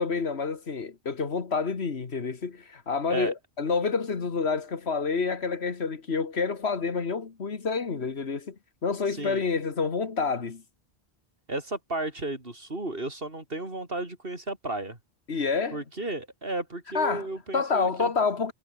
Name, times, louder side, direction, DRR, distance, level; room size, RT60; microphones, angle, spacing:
voice 1, 0.0-8.6 8.8-10.6 15.3-15.8 16.9-17.3 17.5-18.5, left 5 dB, 70° left, 2.0 m, -28 dB
voice 2, 11.5-15.0 15.7-18.1, right 2 dB, 55° right, 4.9 m, -33 dB
omnidirectional pair, 1.1 m